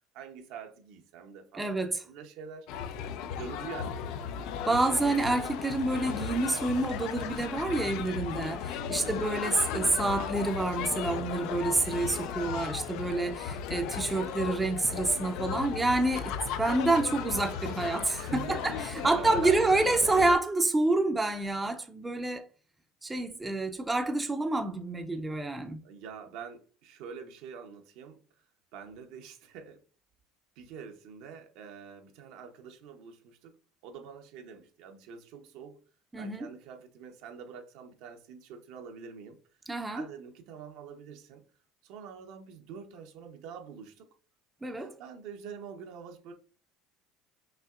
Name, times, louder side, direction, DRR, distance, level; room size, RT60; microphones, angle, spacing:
voice 1, 0.1-1.8 2.0-2.7 3.4-4.2 8.8-9.2 18.2-19.6 25.8-28.2 28.7-29.8 30.6-33.5 33.8-35.8 36.2-39.4 39.9-41.4 41.8-44.1 44.8-46.3, right 6 dB, 75° right, 0.9 m, -45 dB
voice 2, 1.5-2.0 4.7-18.7 19.0-22.4 23.0-25.8 36.1-36.5 39.7-40.0 44.6-44.9, right 2 dB, 10° right, 0.5 m, -28 dB
sound 1, 2.7-20.4, left 8 dB, 70° left, 0.4 m, -36 dB
5.7 x 2.8 x 2.4 m
supercardioid pair, 105°, 0 cm